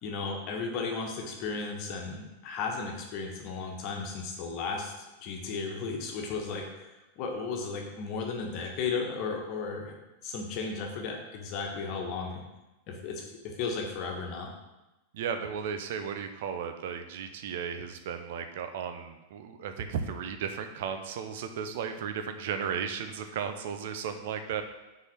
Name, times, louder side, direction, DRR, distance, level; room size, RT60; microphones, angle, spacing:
voice 1, 0.0-4.9 5.2-9.9 10.2-12.4 12.9-14.5, left 4 dB, 40° left, 1 dB, 1.6 m, -35 dB
voice 2, 15.1-24.6, right 7 dB, 55° right, 7 dB, 0.8 m, -35 dB
6.5 x 4.9 x 5.9 m, 1.0 s
figure-of-eight pair, 90°, 0 cm